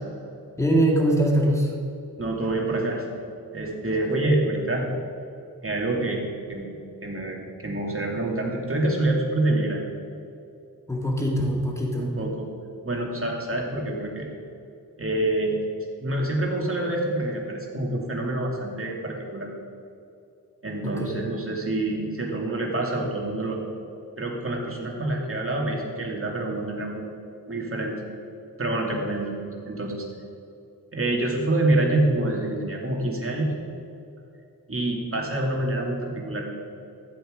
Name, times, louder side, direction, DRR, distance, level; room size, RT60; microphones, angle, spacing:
voice 1, 0.6-1.7 10.9-12.1 20.8-21.2, right 1 dB, 5° left, -1 dB, 2.2 m, -22 dB
voice 2, 2.2-3.1 3.5-4.9 5.6-6.7 7.0-9.8 12.0-12.5 12.8-14.3 15.0-15.6 16.0-19.5 20.6-23.6 24.2-27.0 27.5-28.0 28.6-30.1 30.9-33.5 34.7-36.5, right 2 dB, 35° right, -1 dB, 2.5 m, -26 dB
14.0 x 7.9 x 5.1 m, 2.7 s
wide cardioid pair, 75°, 38 cm